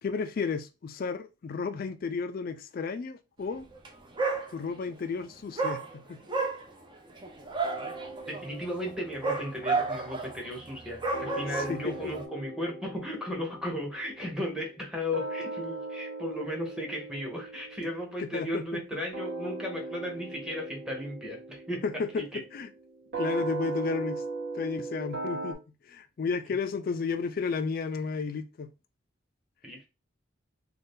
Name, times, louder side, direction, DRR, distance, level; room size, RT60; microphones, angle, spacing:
voice 1, 0.0-3.7 4.5-6.2 11.5-12.1 18.2-18.8 21.8-22.7 23.2-24.2 24.5-25.6 25.9-28.7, left 5 dB, 50° left, 0.3 m, -33 dB
Dog, 3.7-3.9 4.2-4.9 5.6-12.2, right 3 dB, 25° right, 0.5 m, -32 dB
sound 1, 7.6-10.9 11.1-25.5, right 3 dB, 60° right, 1.1 m, -39 dB
voice 2, 8.3-21.8 22.2-22.4 29.6-29.9, left 1 dB, 5° right, 0.8 m, -35 dB
2.6 x 2.3 x 3.5 m
head